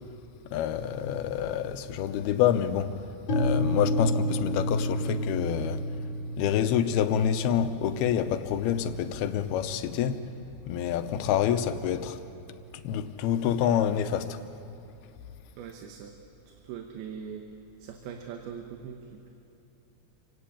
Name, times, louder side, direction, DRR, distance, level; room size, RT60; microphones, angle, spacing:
voice 1, 0.5-3.0 3.3-5.9 6.4-10.2 10.7-12.2 12.7-14.4, left 9 dB, 85° left, 2.8 m, -27 dB
sound 1, 3.3-11.2, left 1 dB, 30° left, 2.3 m, -32 dB
voice 2, 15.6-16.2 16.6-17.5 17.8-19.3, right 7 dB, 85° right, 3.1 m, -41 dB
27.5 x 17.5 x 8.6 m
omnidirectional pair, 4.4 m